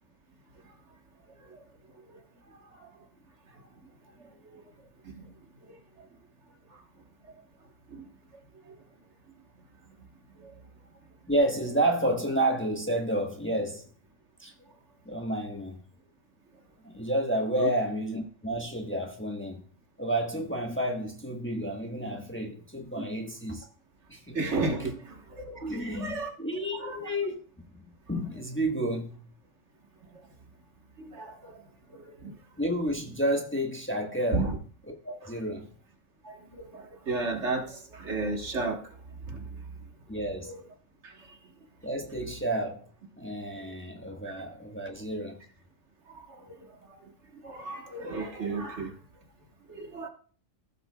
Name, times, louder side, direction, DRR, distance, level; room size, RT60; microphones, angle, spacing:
voice 1, 11.3-13.9 14.4-14.5 15.0-15.8 16.8-19.6 20.0-23.7 24.1-24.4 25.6-27.4 28.1-29.1 32.6-34.5 35.0-35.7 40.1-40.5 41.8-42.8 43.2-45.3, right 1 dB, 10° left, 1.4 m, -30 dB
voice 2, 24.3-26.3 26.7-27.1 31.0-31.5 32.2-32.3 34.3-34.6 36.3-38.8 39.3-39.4 40.4-40.6 41.0-41.1 46.6-46.7 47.4-48.9 49.8-50.1, right 3 dB, 60° right, 1.7 m, -33 dB
15.0 x 7.8 x 2.3 m
omnidirectional pair, 1.4 m